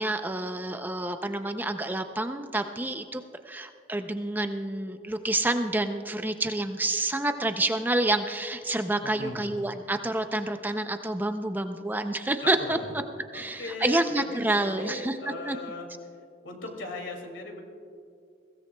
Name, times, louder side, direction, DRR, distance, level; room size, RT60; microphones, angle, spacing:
voice 1, 0.0-12.8 13.3-15.6, right 2 dB, 10° right, 7 dB, 0.4 m, -28 dB
voice 2, 9.0-9.4 12.7-12.9 13.3-15.9 16.4-17.6, left 2 dB, 85° left, 2 dB, 2.3 m, -38 dB
22.5 x 16.5 x 2.2 m, 2.3 s
head